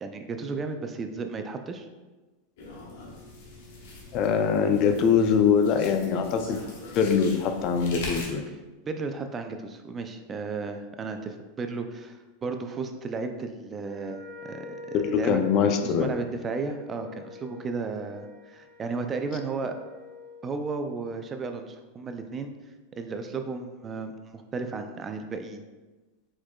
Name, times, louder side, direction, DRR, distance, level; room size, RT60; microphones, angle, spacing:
voice 1, 0.0-1.9 8.9-15.4 15.8-19.8 20.4-22.5 22.9-25.6, right 4 dB, 25° right, 7 dB, 0.4 m, -34 dB
sound 1, 2.6-8.3, left 2 dB, 70° left, 1.2 m, -42 dB
voice 2, 4.1-6.6 7.0-8.4 14.9-16.1, left 6 dB, 45° left, 7 dB, 0.4 m, -23 dB
Wind instrument woodwind instrument, 13.8-20.5, left 5 dB, 50° right, 1.1 m, -46 dB
4.4 x 4.3 x 2.3 m, 1.2 s
hypercardioid pair, 120°, 0 cm